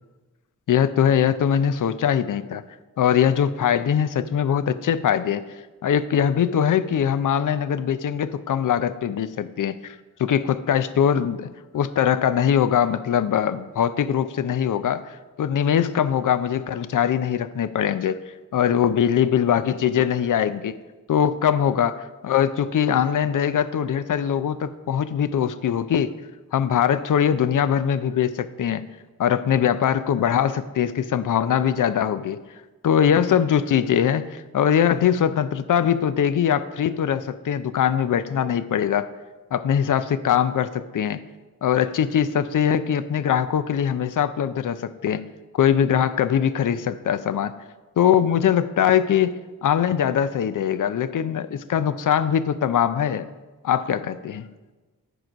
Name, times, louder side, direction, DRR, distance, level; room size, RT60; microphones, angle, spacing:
voice 1, 0.7-2.6 3.0-5.5 5.8-15.1 15.4-18.2 18.5-20.8 21.1-26.2 26.5-28.8 29.2-32.4 32.8-39.1 39.5-41.2 41.6-45.2 45.5-47.6 48.0-53.3 53.6-54.5, left 9 dB, 60° left, 14 dB, 0.5 m, -22 dB
10.0 x 4.6 x 5.1 m, 1.2 s
cardioid pair, 45°, 35 cm